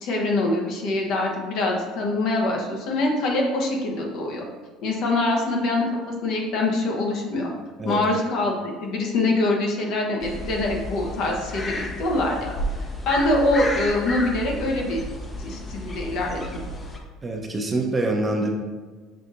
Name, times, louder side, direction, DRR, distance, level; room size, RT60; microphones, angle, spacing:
voice 1, 0.0-4.4 4.8-5.9 6.2-7.5 7.8-15.0 15.4-16.6, left 2 dB, 65° left, 0 dB, 0.8 m, -24 dB
sound 1, 10.2-17.0, left 1 dB, 25° left, 0.6 m, -32 dB
voice 2, 17.2-18.5, right 2 dB, 25° right, 2 dB, 0.6 m, -25 dB
5.7 x 2.6 x 2.5 m, 1.4 s
supercardioid pair, 85°, 0 cm